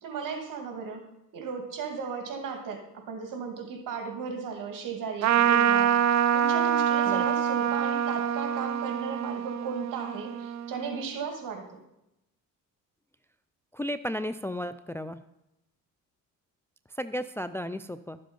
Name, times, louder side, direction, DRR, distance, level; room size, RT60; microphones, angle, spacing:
voice 1, 0.0-1.1 1.3-11.8, right 5 dB, 70° right, 5 dB, 2.3 m, -36 dB
Trumpet, 5.2-11.0, right 9 dB, 55° right, 0.6 m, -25 dB
voice 2, 13.7-15.2 16.9-18.2, left 1 dB, 10° left, 12 dB, 0.4 m, -34 dB
12.0 x 7.7 x 5.3 m, 0.87 s
cardioid pair, 95°, 33 cm